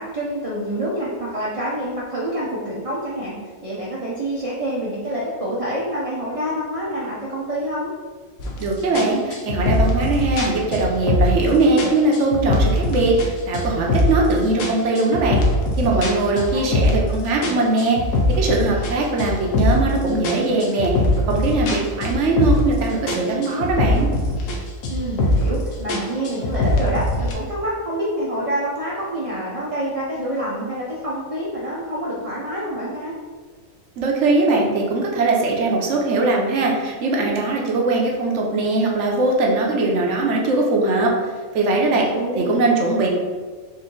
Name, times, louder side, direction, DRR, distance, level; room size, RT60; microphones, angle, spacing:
voice 1, 0.0-3.3 3.6-7.9 16.3-16.6 24.9-33.2 41.9-42.6, right 1 dB, 40° right, -6 dB, 0.5 m, -27 dB
sound 1, 8.4-8.6 9.0-11.5 11.8-13.3 13.5-14.3 14.6-17.1 17.4-19.9 20.2-22.8 23.1-24.6 24.8-25.6 25.9-27.3, left 1 dB, 85° left, 1.2 m, -21 dB
voice 2, 8.6-15.4 15.8-18.0 18.3-20.9 21.3-24.1 34.0-41.2 41.5-42.1 42.4-43.1, right 2 dB, 65° right, -1 dB, 1.0 m, -20 dB
4.3 x 2.6 x 3.7 m, 1.5 s
omnidirectional pair, 1.4 m